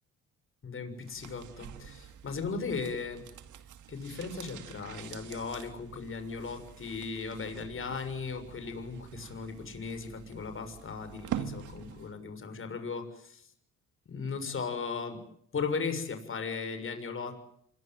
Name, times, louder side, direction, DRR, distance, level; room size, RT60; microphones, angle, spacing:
voice 1, 0.6-3.2 3.9-13.5 14.0-15.2 15.5-17.4, left 5 dB, 45° left, 8 dB, 6.7 m, -37 dB
sound 1, 1.0-12.2 12.5-12.6, right 10 dB, 80° right, 2.2 m, -45 dB
27.0 x 22.5 x 9.3 m, 0.70 s
cardioid pair, 90°, 30 cm